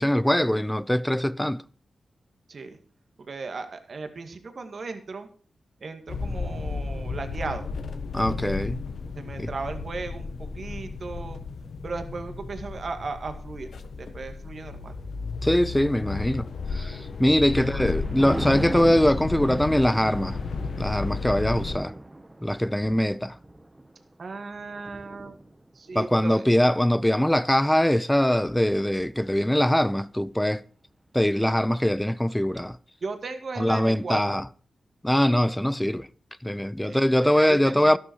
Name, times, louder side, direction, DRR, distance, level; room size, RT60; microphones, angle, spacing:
voice 1, 0.0-1.6 8.1-8.8 9.4-9.5 15.4-20.4 20.8-21.9 22.4-23.4 25.9-30.6 31.1-32.8 33.6-34.4 35.0-36.1 36.4-38.0, equal, 10° left, 0.7 m, -22 dB
voice 2, 3.3-5.3 5.8-7.8 9.2-11.4 11.8-13.7 14.0-15.0 17.6-17.9 24.2-25.4 25.7-26.5 33.0-34.4 36.8-38.0, right 4 dB, 60° right, 2.1 m, -36 dB
sound 1, 6.1-21.8, left 4 dB, 75° left, 1.5 m, -33 dB
Thunder, 17.0-28.5 29.0-29.3, right 1 dB, 20° right, 1.1 m, -39 dB
12.5 x 11.5 x 4.7 m
cardioid pair, 50°, 0 cm